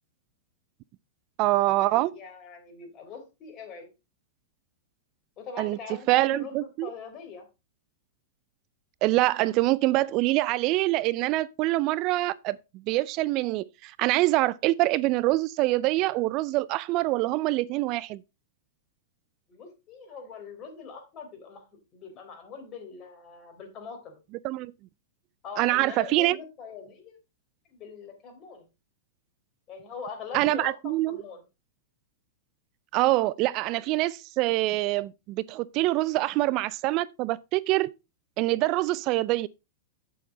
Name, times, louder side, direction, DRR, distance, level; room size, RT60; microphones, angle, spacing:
voice 1, 1.4-2.1 5.6-5.8 6.1-6.9 9.0-12.6 12.9-18.2 24.4-24.7 25.6-26.4 30.3-31.2 32.9-37.9 38.4-39.5, right 18 dB, 45° right, 0.4 m, -25 dB
voice 2, 1.9-3.9 5.4-7.5 19.5-21.7 21.9-24.2 25.4-27.2 27.7-28.7 29.7-31.4, left 5 dB, 35° left, 3.7 m, -42 dB
9.0 x 7.0 x 4.0 m
hypercardioid pair, 110°, 0 cm